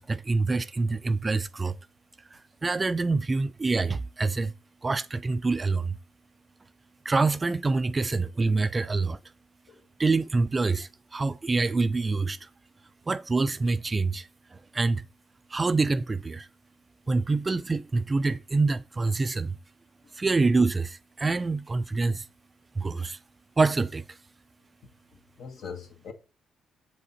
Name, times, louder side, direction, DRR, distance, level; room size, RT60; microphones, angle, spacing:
voice 1, 0.0-1.8 2.3-4.5 4.8-6.0 7.1-9.2 10.0-12.5 13.1-15.1 15.5-16.5 17.1-19.6 20.2-22.2 22.8-23.2 23.6-24.0, right 3 dB, 25° right, 0.4 m, -26 dB
voice 2, 25.1-26.1, left 6 dB, 65° left, 1.7 m, -42 dB
7.6 x 5.0 x 4.0 m
cardioid pair, 90°, 0 cm